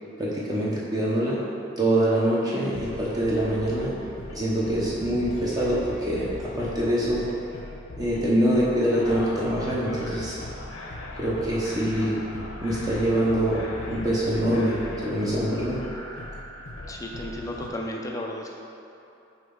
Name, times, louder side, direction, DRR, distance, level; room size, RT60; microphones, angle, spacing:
voice 1, 0.2-1.4 1.8-4.0 4.3-7.2 8.0-10.4 11.2-12.2 12.6-15.8, right 1 dB, 20° right, -7 dB, 0.8 m, -24 dB
sound 1, 2.7-17.7, left 1 dB, 85° left, 0.9 m, -39 dB
voice 2, 16.9-18.5, left 1 dB, 15° left, 0 dB, 0.4 m, -34 dB
7.6 x 2.9 x 5.2 m, 2.9 s
head